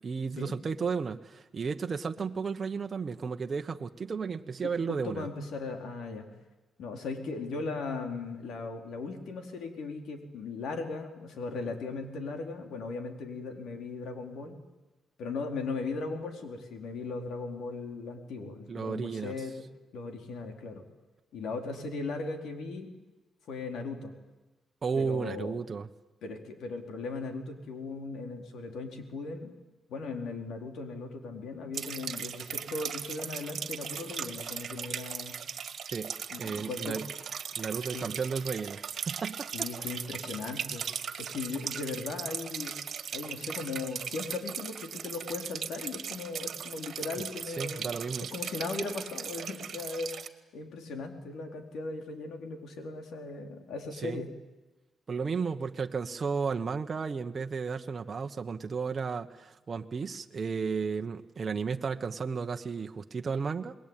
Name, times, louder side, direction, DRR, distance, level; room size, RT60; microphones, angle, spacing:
voice 1, 0.0-5.3 18.7-19.3 24.8-25.9 35.8-36.1 36.4-37.1 37.6-39.5 47.2-48.3 54.0-54.2 55.1-63.7, right 5 dB, 40° right, 5 dB, 1.2 m, -33 dB
voice 2, 4.6-6.3 6.8-14.6 15.2-19.6 19.9-20.8 21.3-22.9 23.5-24.2 24.9-25.5 26.2-29.5 29.9-35.4 36.3-37.0 37.9-38.1 39.5-40.8 41.2-42.7 43.1-50.1 50.5-54.3, left 3 dB, 80° left, 4 dB, 4.3 m, -38 dB
sound 1, 31.7-50.3, right 7 dB, 60° right, 1.8 m, -38 dB
27.5 x 21.5 x 9.1 m, 1.1 s
cardioid pair, 100°, 0 cm